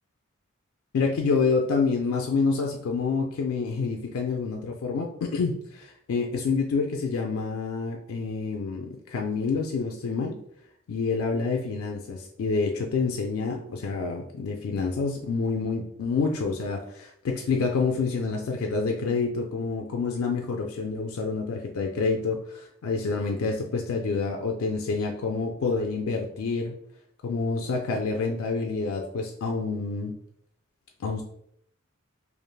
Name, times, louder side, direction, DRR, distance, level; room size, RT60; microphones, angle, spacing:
voice 1, 0.9-10.4 10.9-26.7 27.2-30.1 31.0-31.2, left 4 dB, 80° left, 2 dB, 0.4 m, -28 dB
3.2 x 2.4 x 2.2 m, 0.70 s
head